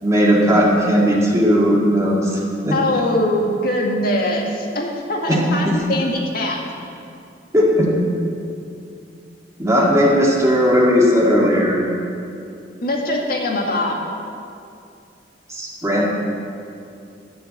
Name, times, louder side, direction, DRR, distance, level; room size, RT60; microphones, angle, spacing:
voice 1, 0.0-2.8 5.3-5.4 7.5-7.9 9.6-11.8 15.5-16.1, equal, 15° right, -4 dB, 2.0 m, -16 dB
voice 2, 2.7-6.6 12.8-14.0, left 1 dB, 55° left, 0 dB, 1.9 m, -22 dB
12.0 x 7.0 x 8.6 m, 2.5 s
head